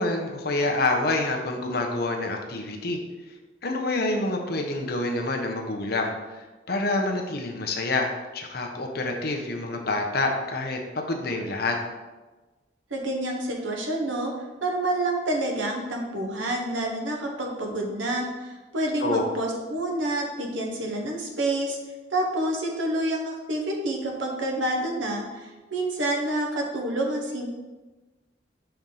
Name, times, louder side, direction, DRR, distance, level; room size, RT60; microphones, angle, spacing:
voice 1, 0.0-3.0 3.6-8.1 8.3-11.8 19.0-19.3, left 2 dB, 55° left, 2 dB, 0.8 m, -27 dB
voice 2, 12.9-14.3 14.6-21.8 22.1-27.5, right 1 dB, 90° right, 1 dB, 1.0 m, -28 dB
5.5 x 4.5 x 3.8 m, 1.2 s
head